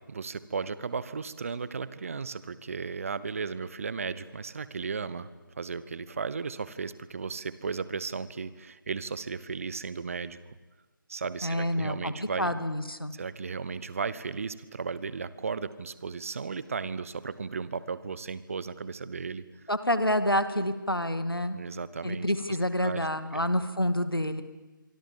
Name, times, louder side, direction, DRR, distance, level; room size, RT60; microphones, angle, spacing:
voice 1, 0.1-5.3 5.5-10.4 11.1-12.5 13.1-19.4 21.5-22.3 22.8-23.5, right 5 dB, 40° right, 16 dB, 1.1 m, -35 dB
voice 2, 11.4-13.1 19.7-21.6 22.0-24.4, left 1 dB, 90° left, 10 dB, 2.3 m, -28 dB
26.0 x 24.5 x 7.4 m, 1.2 s
figure-of-eight pair, 155°, 12 cm